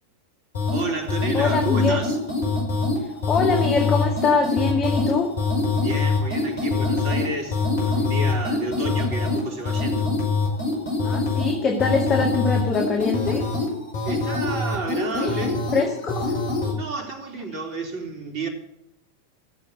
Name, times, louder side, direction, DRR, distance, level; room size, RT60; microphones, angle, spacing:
sound 1, 0.5-16.8, left 3 dB, 60° left, 5.8 m, -24 dB
voice 1, 0.7-2.2 5.8-10.1 14.0-15.6 16.1-16.3 16.7-18.5, right 3 dB, 40° right, 2 dB, 3.7 m, -31 dB
voice 2, 1.3-2.0 3.0-5.3 11.0-13.4 15.2-15.4 15.7-16.3, left 4 dB, 25° left, 1 dB, 2.0 m, -23 dB
15.5 x 7.5 x 8.3 m, 0.79 s
figure-of-eight pair, 90°, 0 cm